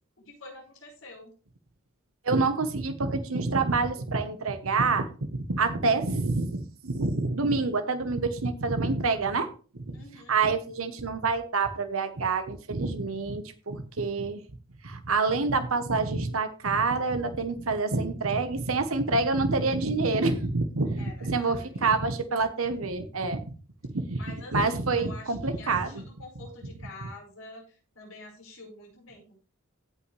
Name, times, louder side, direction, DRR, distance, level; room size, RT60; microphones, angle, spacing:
voice 1, 0.2-1.3 9.9-10.4 21.0-22.0 24.2-29.4, left 2 dB, 70° left, -2 dB, 5.4 m, -47 dB
voice 2, 2.2-5.1 5.5-9.5 9.8-10.0 10.3-14.4 14.8-23.4 23.9-24.2 24.5-26.0, right 3 dB, 80° right, 8 dB, 1.1 m, -27 dB
16.5 x 5.7 x 3.3 m, 0.36 s
head